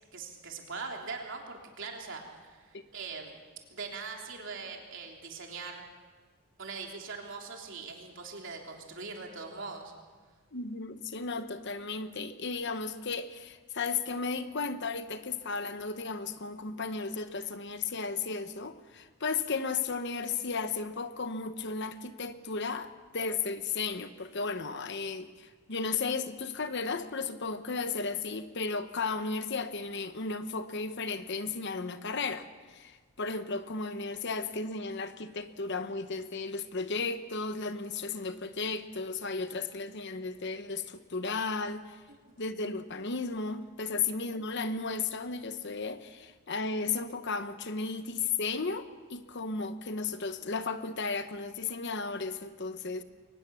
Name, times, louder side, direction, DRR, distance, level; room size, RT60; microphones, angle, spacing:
voice 1, 0.1-3.4 3.7-5.8 6.6-9.9 42.1-42.4, right 4 dB, 60° right, 3.5 m, -42 dB
voice 2, 10.5-42.0 42.4-53.0, left 4 dB, 55° left, 1.0 m, -34 dB
23.0 x 19.5 x 7.1 m
head